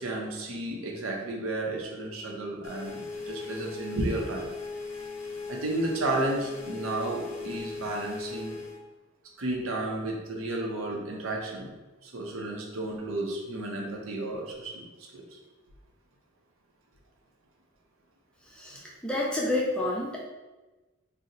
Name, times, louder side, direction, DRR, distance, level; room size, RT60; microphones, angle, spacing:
voice 1, 0.0-4.5 5.5-8.6 9.4-11.7 12.0-14.9 15.1-15.4, right 2 dB, 80° right, 0 dB, 0.6 m, -32 dB
sound 1, 2.6-8.8, left 4 dB, 75° left, 0.6 m, -39 dB
voice 2, 18.6-20.1, left 2 dB, 5° left, -4 dB, 0.4 m, -29 dB
2.7 x 2.0 x 3.9 m, 1.2 s
head